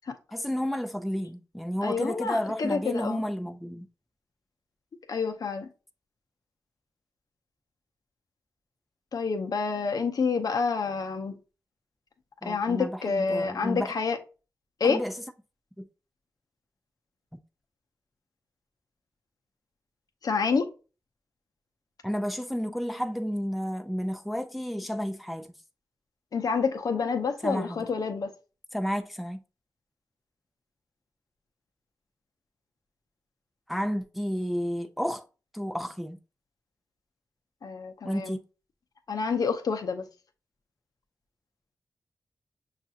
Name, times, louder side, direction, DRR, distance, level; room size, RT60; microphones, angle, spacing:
voice 1, 0.3-3.9 12.4-13.9 14.8-15.1 15.8-15.9 22.0-25.5 27.4-27.9 28.7-29.4 33.7-35.3 35.5-36.2 38.0-38.4, equal, ahead, 0.4 m, -31 dB
voice 2, 1.8-3.2 5.1-5.7 9.1-11.3 12.4-14.2 14.8-15.0 20.2-20.7 26.3-28.3 37.6-38.4 39.1-40.0, left 5 dB, 70° left, 0.6 m, -28 dB
5.8 x 2.4 x 2.7 m
cardioid pair, 70°, 7 cm